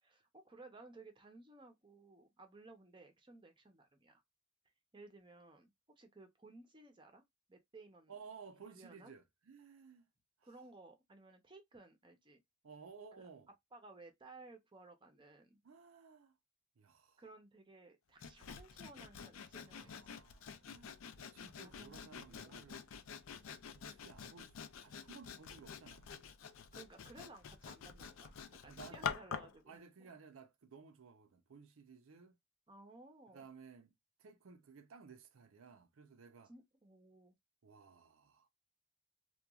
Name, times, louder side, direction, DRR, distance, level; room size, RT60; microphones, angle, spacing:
voice 1, 0.0-4.2 4.9-7.2 7.5-8.1 8.7-9.1 10.4-12.4 13.7-15.6 17.2-20.2 21.5-22.8 26.7-30.1 32.7-33.4 36.5-37.3, right 2 dB, 25° right, 0.6 m, -58 dB
voice 2, 8.1-10.1 10.4-10.5 12.6-13.5 15.6-16.4 16.8-17.2 19.6-23.2 23.7-26.3 28.7-29.1 29.7-32.4 33.3-33.9 34.2-36.5 37.6-38.5, right 5 dB, 80° right, 0.5 m, -57 dB
Sawing, 18.2-29.6, left 7 dB, 75° left, 0.4 m, -48 dB
2.9 x 2.3 x 2.3 m
head